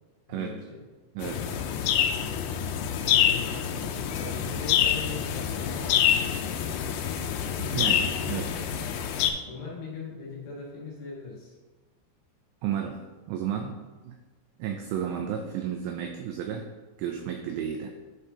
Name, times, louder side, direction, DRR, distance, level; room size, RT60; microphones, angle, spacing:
voice 1, 0.3-0.8 1.5-1.7 3.2-7.0 7.7-8.3 8.7-8.9 9.4-11.6, left 4 dB, 65° left, -5 dB, 3.4 m, -41 dB
sound 1, 1.2-9.3, left 9 dB, 85° left, 3.2 m, -26 dB
voice 2, 1.2-1.6 7.5-8.5 12.6-14.1 14.6-16.7 17.0-17.9, right 8 dB, 90° right, 4 dB, 2.6 m, -33 dB
11.0 x 5.0 x 2.8 m, 1.3 s
omnidirectional pair, 5.9 m